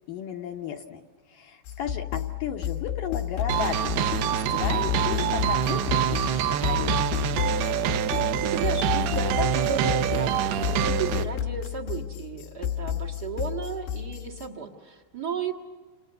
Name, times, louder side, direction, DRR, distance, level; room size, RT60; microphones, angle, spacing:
voice 1, 0.1-1.0 1.3-7.1, left 8 dB, 70° left, 4 dB, 2.1 m, -35 dB
sound 1, 1.7-14.5, left 11 dB, 85° left, 3.5 m, -31 dB
sound 2, 3.5-11.2, right 10 dB, 75° right, 2.8 m, -26 dB
voice 2, 8.4-15.5, right 5 dB, 50° right, 1 dB, 1.1 m, -34 dB
29.5 x 28.0 x 6.8 m, 1.4 s
omnidirectional pair, 5.0 m